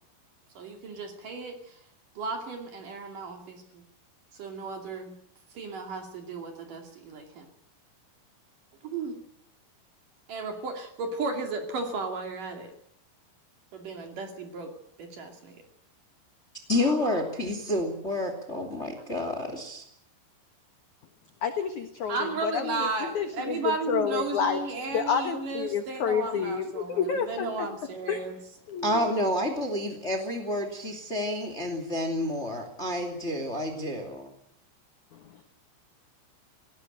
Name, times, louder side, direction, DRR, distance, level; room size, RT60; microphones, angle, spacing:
voice 1, 0.6-1.8 2.2-3.8 4.3-5.2 5.5-7.5 8.8-9.2 10.3-12.7 13.7-14.7 15.0-15.6 22.1-28.4, right 4 dB, 50° right, 4 dB, 3.6 m, -34 dB
voice 2, 16.7-19.8 28.8-34.3, left 1 dB, 20° left, 6 dB, 2.1 m, -29 dB
voice 3, 21.4-24.6 24.9-27.7 28.1-28.3 28.7-29.0 35.1-35.4, left 7 dB, 70° left, 7 dB, 1.8 m, -29 dB
19.0 x 18.0 x 9.0 m, 0.69 s
omnidirectional pair, 5.5 m